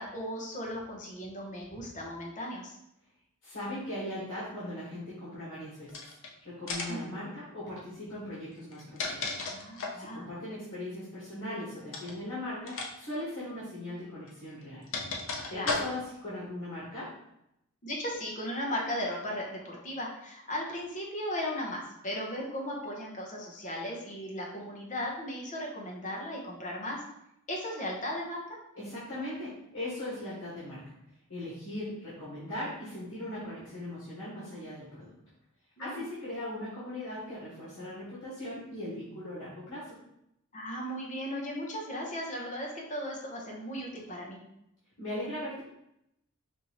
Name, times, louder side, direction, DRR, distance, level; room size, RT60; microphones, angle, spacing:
voice 1, 0.0-2.8 6.9-7.2 9.4-10.3 15.5-15.8 17.8-27.0 27.5-28.4 35.8-36.0 40.5-44.4, equal, 35° left, -2 dB, 0.9 m, -36 dB
voice 2, 3.4-6.1 6.4-9.4 10.0-14.8 15.5-17.1 28.7-30.9 31.3-35.1 35.8-40.0 45.0-45.6, left 1 dB, 85° left, -9 dB, 1.7 m, -39 dB
sound 1, 5.9-6.3 6.7-7.1 8.6-10.1 11.9-12.2 12.7-12.9 13.2-13.3 14.3-16.2, left 3 dB, 65° left, 0.7 m, -35 dB
5.3 x 2.8 x 3.0 m, 0.81 s
head